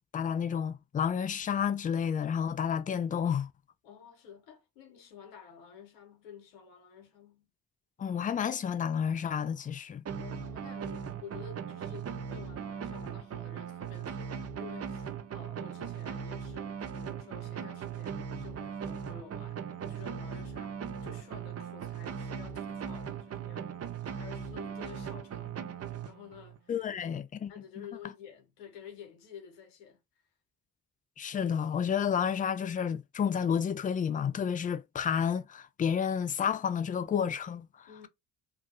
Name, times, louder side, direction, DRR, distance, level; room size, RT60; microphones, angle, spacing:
voice 1, 0.1-3.5 8.0-10.0 26.7-27.5 27.8-27.9 31.2-38.1, left 7 dB, 20° left, 0.3 m, -30 dB
voice 2, 3.8-7.5 10.2-23.7 24.0-27.2 27.5-30.0 37.9-38.1, left 7 dB, 75° left, 1.0 m, -51 dB
sound 1, 10.1-26.6, right 7 dB, 30° right, 0.6 m, -39 dB
2.6 x 2.1 x 3.6 m
figure-of-eight pair, 40°, 47 cm